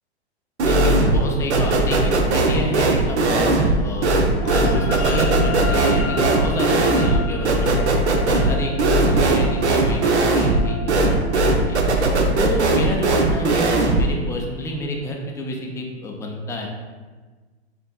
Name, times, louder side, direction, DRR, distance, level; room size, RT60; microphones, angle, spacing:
voice 1, 0.6-4.2 4.5-7.8 8.2-11.8 12.4-16.7, left 1 dB, 10° left, 0 dB, 0.3 m, -29 dB
sound 1, 0.6-1.3 1.5-14.1, right 2 dB, 85° right, 0.6 m, -19 dB
sound 2, 4.4-15.0, equal, 80° left, 0.9 m, -31 dB
6.9 x 2.6 x 2.2 m, 1.4 s
hypercardioid pair, 105°, 33 cm